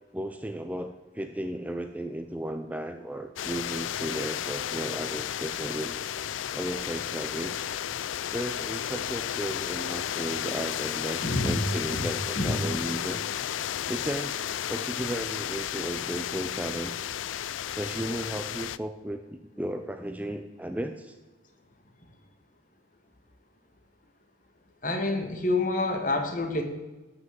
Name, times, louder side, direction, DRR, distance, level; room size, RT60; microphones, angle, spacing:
voice 1, 0.1-6.0 6.5-7.7 8.3-13.2 13.9-17.1 17.7-21.2, right 1 dB, 10° right, 7 dB, 0.5 m, -35 dB
sound 1, 3.4-18.8, left 10 dB, 90° left, 0.4 m, -33 dB
voice 2, 11.2-11.6 12.4-12.6 24.8-26.6, left 2 dB, 45° left, 5 dB, 1.7 m, -27 dB
13.0 x 6.1 x 7.8 m, 1.1 s
head